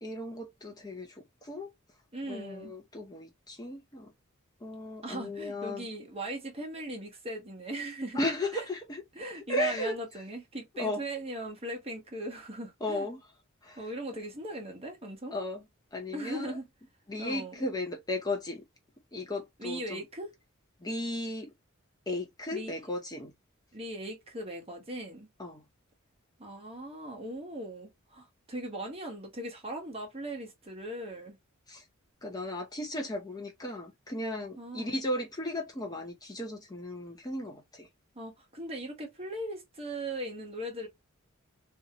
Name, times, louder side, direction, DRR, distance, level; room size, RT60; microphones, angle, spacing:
voice 1, 0.0-1.7 2.3-4.1 4.6-5.9 8.1-9.0 9.3-9.9 10.8-11.0 12.8-13.2 13.6-13.8 15.3-15.6 15.9-16.6 17.1-18.6 19.1-20.0 20.8-21.5 22.1-23.3 25.4-25.6 31.7-31.8 32.2-37.9, left 1 dB, 20° left, 0.6 m, -35 dB
voice 2, 2.1-2.7 5.0-8.2 8.5-8.6 9.1-13.1 13.8-15.3 16.1-16.7 17.2-17.6 19.6-20.3 22.5-22.8 23.7-25.3 26.4-31.4 34.6-35.0 38.1-40.9, right 1 dB, 30° right, 1.2 m, -39 dB
3.5 x 2.8 x 2.9 m
head